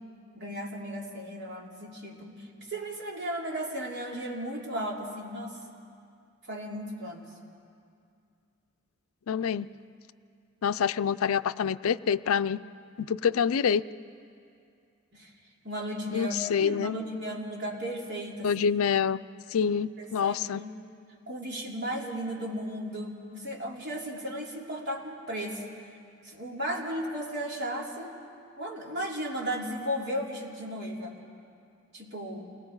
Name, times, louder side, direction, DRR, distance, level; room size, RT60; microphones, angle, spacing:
voice 1, 0.3-5.6 6.5-7.3 15.1-15.3 15.6-18.5 20.0-20.7 21.3-25.7 26.2-28.1 28.6-31.1 31.9-32.4, equal, 55° right, -2 dB, 3.0 m, -35 dB
voice 2, 9.3-9.7 10.6-12.6 13.0-13.8 16.1-16.9 18.4-19.2 19.5-20.6, left 7 dB, 80° left, 14 dB, 0.4 m, -26 dB
28.5 x 19.5 x 4.8 m, 2.4 s
head